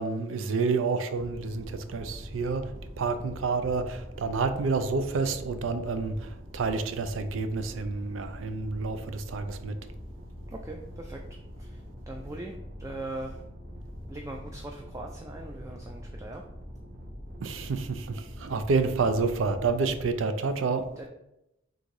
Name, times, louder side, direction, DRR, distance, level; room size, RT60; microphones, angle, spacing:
voice 1, 0.0-2.7 3.0-9.8 17.4-20.9, right 4 dB, 85° right, 10 dB, 0.4 m, -29 dB
sound 1, 1.1-20.1, equal, 50° right, 1.4 m, -43 dB
voice 2, 10.5-11.2 11.6-11.8 12.1-13.4 14.1-16.4 18.5-18.6 21.0-21.1, right 2 dB, 15° right, 2 dB, 0.3 m, -40 dB
3.8 x 2.6 x 4.6 m, 0.87 s
head